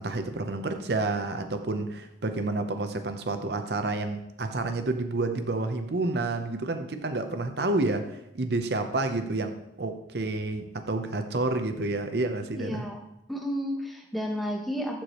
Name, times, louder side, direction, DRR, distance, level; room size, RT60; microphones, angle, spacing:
voice 1, 0.0-12.8, right 2 dB, 55° right, 0.7 m, -29 dB
voice 2, 12.6-13.0 13.3-15.0, equal, ahead, 0.9 m, -32 dB
13.0 x 4.7 x 3.0 m
head